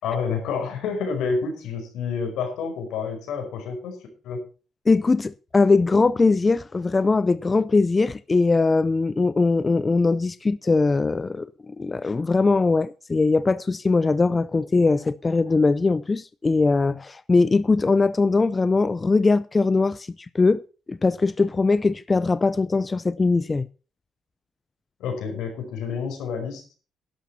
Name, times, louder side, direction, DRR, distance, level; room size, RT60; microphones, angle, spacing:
voice 1, 0.0-4.0 4.2-4.4 25.0-26.6, left 5 dB, 85° left, 5.1 m, -28 dB
voice 2, 4.9-20.1 20.3-20.6 20.9-23.7, left 3 dB, 25° left, 0.5 m, -21 dB
12.0 x 11.5 x 4.3 m
cardioid pair, 90°, 0 cm